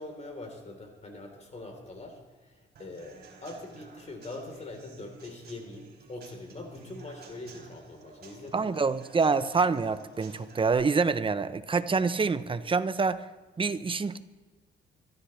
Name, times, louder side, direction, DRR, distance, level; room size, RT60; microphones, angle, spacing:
voice 1, 0.0-8.8, left 2 dB, 35° left, 3 dB, 3.6 m, -43 dB
Human voice / Acoustic guitar / Drum, 2.8-10.7, right 4 dB, 55° right, 4.4 m, -52 dB
voice 2, 8.5-13.2 13.6-14.2, right 4 dB, 25° right, 13 dB, 0.8 m, -26 dB
25.0 x 13.5 x 3.2 m, 1.3 s
cardioid pair, 90°, 20 cm